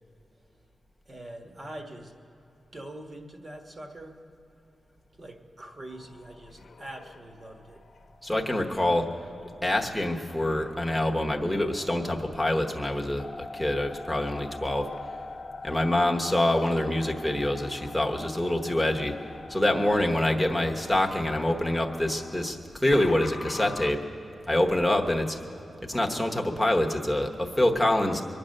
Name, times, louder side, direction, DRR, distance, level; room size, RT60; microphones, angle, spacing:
voice 1, 1.1-2.1 2.7-4.2 5.2-7.8 8.7-9.0, right 1 dB, 35° right, 2 dB, 1.4 m, -43 dB
sound 1, 5.9-23.9, left 3 dB, 60° left, 0.9 m, -44 dB
voice 2, 8.2-9.0 9.6-13.3 13.5-14.9 15.6-19.2 19.5-22.6 22.8-24.0 24.5-25.4 25.8-28.2, left 1 dB, ahead, 0 dB, 1.0 m, -25 dB
23.5 x 8.7 x 6.5 m, 2.9 s
wide cardioid pair, 160°, 0 cm